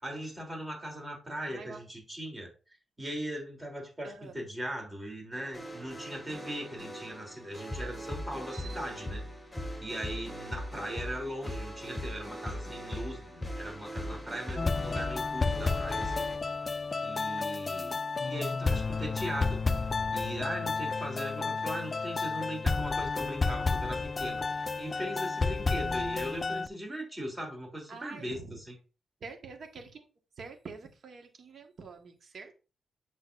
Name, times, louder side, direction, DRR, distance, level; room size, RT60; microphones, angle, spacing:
voice 1, 0.0-2.5 3.0-9.2 9.8-16.2 16.7-18.0 18.3-19.6 20.1-28.7, right 1 dB, 15° right, 0 dB, 3.1 m, -39 dB
voice 2, 1.5-1.8 4.0-4.3 8.5-8.8 27.9-28.6 29.2-30.0 30.4-32.5, right 4 dB, 60° right, 4 dB, 1.5 m, -46 dB
sound 1, 5.3-16.4, equal, 10° left, 2.5 m, -40 dB
sound 2, 14.6-26.7, left 4 dB, 30° left, 0.3 m, -31 dB
8.3 x 6.2 x 2.6 m, 0.32 s
wide cardioid pair, 120°, 0 cm